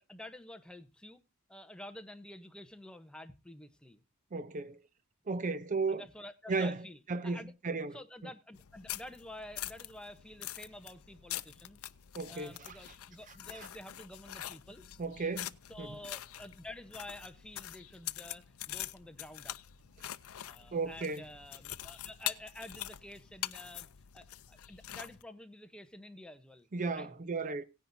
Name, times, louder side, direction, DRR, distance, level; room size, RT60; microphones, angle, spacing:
voice 1, 0.1-1.2 1.5-4.0 5.9-7.5 7.9-11.8 12.3-14.9 15.7-19.6 20.4-27.1, left 1 dB, 5° left, 0.9 m, -49 dB
voice 2, 4.3-4.8 5.3-6.0 6.5-8.0 12.1-12.8 13.5-13.7 15.0-15.5 15.8-16.0 20.7-21.3 26.7-27.6, right 4 dB, 35° right, 0.5 m, -35 dB
sound 1, 8.6-25.2, left 14 dB, 70° left, 0.5 m, -44 dB
17.5 x 10.0 x 2.7 m
head